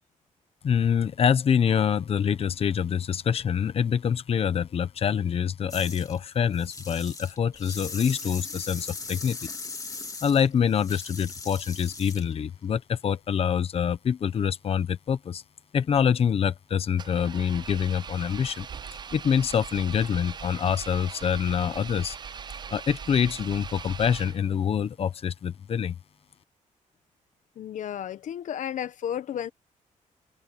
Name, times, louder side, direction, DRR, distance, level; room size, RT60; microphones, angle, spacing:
voice 1, 0.6-9.5 10.2-15.4 15.7-18.7 19.1-22.2 22.7-25.9, left 7 dB, 50° left, 0.9 m, -25 dB
water bathroom sink faucet on off, 5.7-6.2 6.5-12.3, left 4 dB, 25° left, 2.2 m, -39 dB
Engine, 16.9-24.7, right 6 dB, 35° right, 0.4 m, -40 dB
voice 2, 27.6-29.5, left 10 dB, 75° left, 0.9 m, -33 dB
wide cardioid pair, 150°, 13 cm